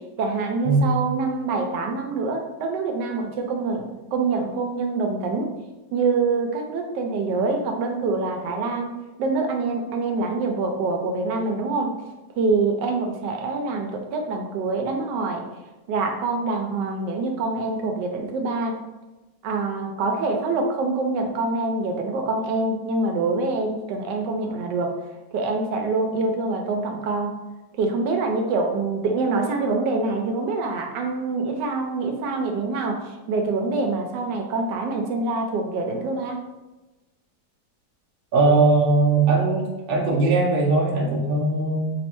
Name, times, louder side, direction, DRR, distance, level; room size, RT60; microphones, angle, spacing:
voice 1, 0.2-5.5 5.9-11.9 12.3-15.4 15.9-18.8 19.4-24.9 25.3-27.4 27.8-36.4, right 3 dB, 80° right, 3 dB, 1.2 m, -25 dB
voice 2, 38.3-41.9, right 3 dB, 50° right, -3 dB, 0.7 m, -20 dB
3.3 x 3.1 x 2.9 m, 1.1 s
omnidirectional pair, 1.9 m